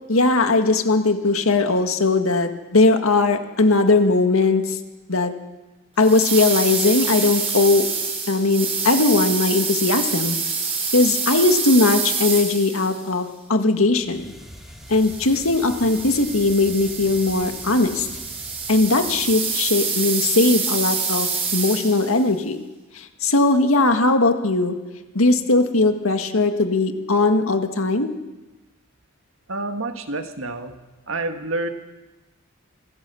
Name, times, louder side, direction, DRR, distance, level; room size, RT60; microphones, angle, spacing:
voice 1, 0.1-4.8 5.1-5.3 6.0-7.9 8.3-10.4 10.9-14.2 14.9-18.1 18.7-22.6 23.0-24.8 25.2-28.1, left 3 dB, 80° left, 6 dB, 1.9 m, -19 dB
sound 1, 6.0-13.0 14.9-22.2, right 5 dB, 30° right, 4.9 m, -27 dB
sound 2, 14.0-19.8, equal, ahead, 3.7 m, -43 dB
voice 2, 29.5-30.8 31.1-31.7, right 2 dB, 70° right, 6 dB, 1.8 m, -28 dB
26.5 x 15.5 x 7.1 m, 1.2 s
head